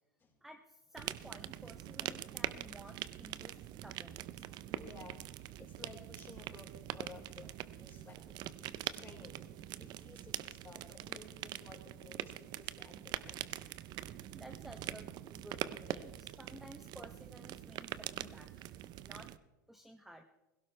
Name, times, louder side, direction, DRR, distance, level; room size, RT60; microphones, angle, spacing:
voice 1, 0.4-4.5 14.3-18.5 19.0-19.3 19.7-20.2, equal, ahead, 5 dB, 0.8 m, -54 dB
sound 1, 1.0-19.4, right 13 dB, 45° right, 0.6 m, -44 dB
voice 2, 4.7-13.6, left 4 dB, 20° left, -2 dB, 4.7 m, -56 dB
17.0 x 16.5 x 3.3 m, 1.1 s
hypercardioid pair, 115°, 10 cm